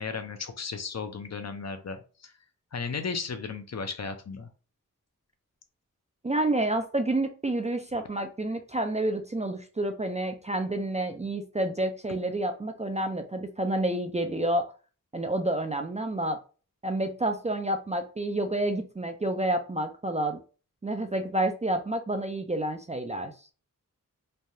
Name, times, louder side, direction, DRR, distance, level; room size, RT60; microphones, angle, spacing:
voice 1, 0.0-2.3 2.7-4.5, left 5 dB, 50° left, 7 dB, 0.6 m, -35 dB
voice 2, 6.2-14.7 15.1-16.4 16.8-20.4 20.8-23.3, right 1 dB, 20° right, 6 dB, 0.3 m, -29 dB
3.2 x 2.3 x 2.6 m, 0.36 s
wide cardioid pair, 75°, 33 cm